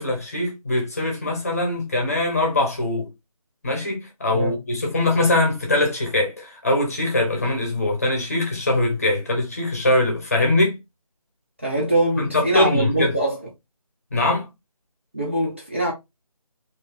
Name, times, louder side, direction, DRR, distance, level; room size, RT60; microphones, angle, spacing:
voice 1, 0.0-3.1 3.6-10.8 12.2-13.1 14.1-14.5, left 2 dB, 25° left, 0.9 m, -22 dB
voice 2, 11.6-13.4 15.1-15.9, right 1 dB, 20° right, 0.5 m, -23 dB
3.0 x 2.7 x 3.7 m
figure-of-eight pair, 160°, 19 cm